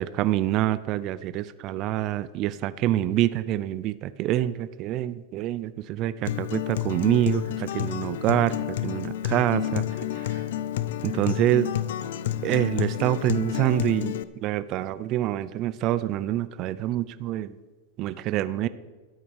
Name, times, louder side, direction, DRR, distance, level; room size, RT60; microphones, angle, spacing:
voice 1, 0.0-9.8 10.2-10.4 11.0-11.7 12.4-17.6 18.0-18.7, right 13 dB, 40° right, 16 dB, 0.5 m, -26 dB
Acoustic guitar, 6.2-14.2, left 12 dB, 75° left, 0.7 m, -30 dB
13.0 x 9.0 x 6.4 m, 1.3 s
supercardioid pair, 145°, 0 cm